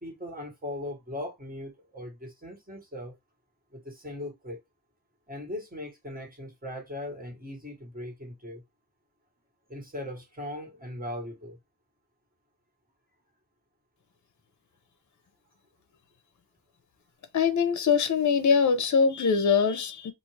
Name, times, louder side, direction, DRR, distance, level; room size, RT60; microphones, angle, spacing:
voice 1, 0.0-3.1 3.7-4.6 5.3-8.6 9.7-11.6, left 1 dB, 25° right, 1.6 m, -39 dB
voice 2, 17.3-20.1, left 6 dB, 50° left, 0.7 m, -23 dB
2.6 x 2.5 x 3.1 m
cardioid pair, 70°, 37 cm